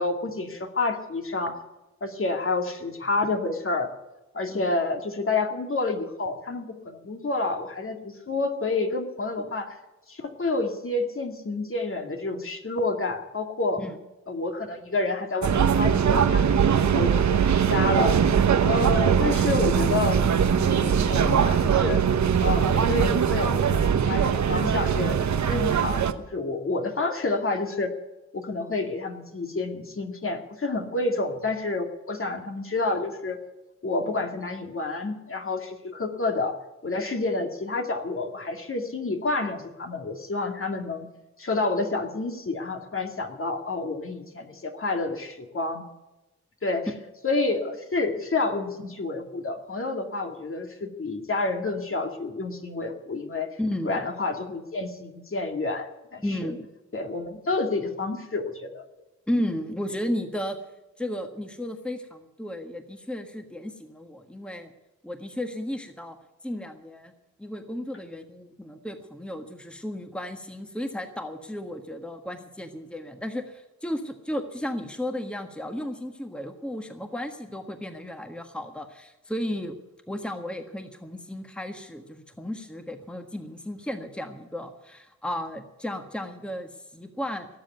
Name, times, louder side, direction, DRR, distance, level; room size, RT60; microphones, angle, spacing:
voice 1, 0.0-1.6 2.0-3.9 4.3-9.8 10.1-13.8 14.3-18.2 18.6-20.8 21.1-22.0 22.4-26.0 26.3-27.9 28.3-33.4 33.8-36.5 36.8-41.1 41.4-45.8 46.6-46.9 47.2-53.5 53.8-56.5 56.9-58.8, left 3 dB, 45° left, 4 dB, 2.4 m, -29 dB
sound 1, 15.4-26.1, right 7 dB, 70° right, 1.0 m, -21 dB
voice 2, 53.6-54.1 56.2-56.7 59.3-60.6 61.0-64.7 65.0-66.2 66.4-67.1 67.4-79.8 80.1-87.5, left 1 dB, 5° left, 6 dB, 1.5 m, -34 dB
18.5 x 7.5 x 9.4 m, 1.0 s
cardioid pair, 75°, 30 cm